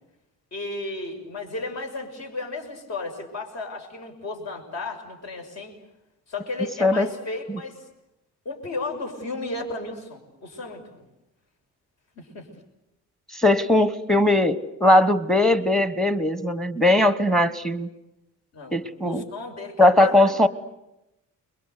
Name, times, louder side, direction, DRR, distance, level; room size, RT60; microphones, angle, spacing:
voice 1, 0.5-5.8 6.3-7.9 8.4-10.9 12.2-12.5 18.5-20.3, left 3 dB, 55° left, 4 dB, 6.4 m, -34 dB
voice 2, 13.3-17.9 18.7-19.2 19.8-20.5, left 1 dB, ahead, 13 dB, 1.1 m, -19 dB
30.0 x 22.0 x 8.2 m, 0.91 s
cardioid pair, 175°, 31 cm